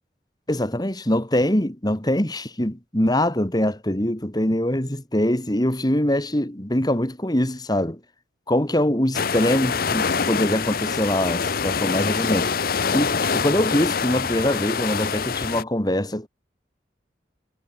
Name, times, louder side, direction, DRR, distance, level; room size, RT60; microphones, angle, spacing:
voice 1, 0.5-8.0 8.5-16.3, left 1 dB, 20° left, 2.4 m, -23 dB
sound 1, 9.1-15.6, left 5 dB, 55° left, 0.8 m, -25 dB
head